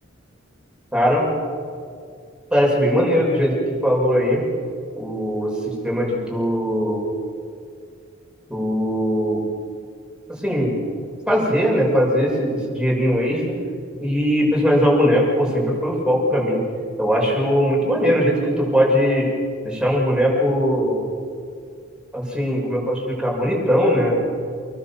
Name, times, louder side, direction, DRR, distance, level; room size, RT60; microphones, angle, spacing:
voice 1, 0.9-1.3 2.5-4.4 4.9-7.0 8.5-9.4 10.3-10.8 11.3-13.5 14.0-16.6 17.0-19.3 19.6-21.0 22.1-24.3, equal, 5° right, -3 dB, 6.7 m, -20 dB
29.5 x 21.5 x 7.5 m, 2.3 s
head